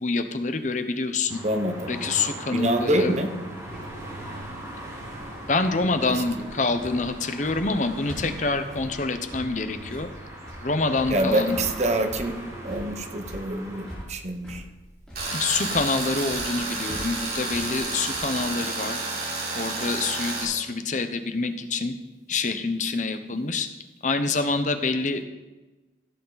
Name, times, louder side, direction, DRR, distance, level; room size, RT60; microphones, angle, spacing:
voice 1, 0.0-1.4 1.9-3.1 5.5-10.1 10.6-11.6 15.3-19.0 19.5-21.9 22.3-23.7 24.0-25.2, left 3 dB, 45° left, 9 dB, 0.8 m, -26 dB
sound 1, 1.3-14.0, right 1 dB, 20° right, 4.8 m, -40 dB
voice 2, 1.4-1.9 2.5-3.3 6.1-6.2 11.1-12.4 12.6-14.6, right 1 dB, 40° right, 6 dB, 1.1 m, -26 dB
sound 2, 3.6-18.5, equal, 5° left, 3.9 m, -44 dB
Tools, 15.2-20.4, right 3 dB, 55° right, 4.0 m, -30 dB
16.0 x 8.3 x 4.0 m, 1.1 s
head